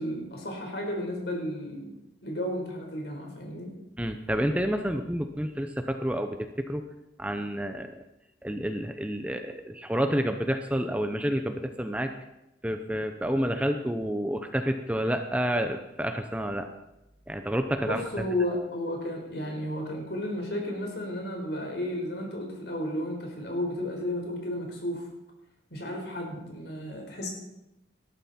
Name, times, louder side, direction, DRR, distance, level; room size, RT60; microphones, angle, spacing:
voice 1, 0.0-1.9 2.2-3.7 17.8-25.1 25.7-27.3, left 1 dB, 60° left, 1 dB, 4.6 m, -33 dB
voice 2, 4.0-6.8 7.2-7.9 8.4-12.1 12.6-16.7 17.3-18.0, equal, 5° right, 6 dB, 0.7 m, -29 dB
19.0 x 13.0 x 4.4 m, 0.92 s
head